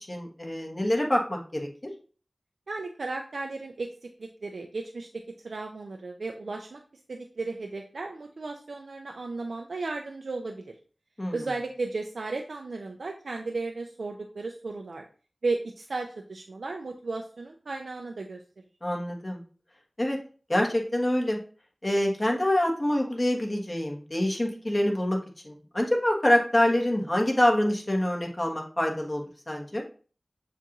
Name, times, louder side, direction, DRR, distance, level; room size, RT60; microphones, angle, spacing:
voice 1, 0.1-1.7 11.2-11.4 18.8-19.4 20.0-20.2 20.5-21.4 21.8-25.2 25.4-29.8, left 1 dB, 30° left, -1 dB, 1.4 m, -26 dB
voice 2, 2.7-6.8 7.1-10.7 11.3-15.0 15.4-18.4, right 3 dB, 85° right, 3 dB, 0.4 m, -35 dB
7.0 x 2.5 x 3.0 m, 0.40 s
wide cardioid pair, 45°, 0 cm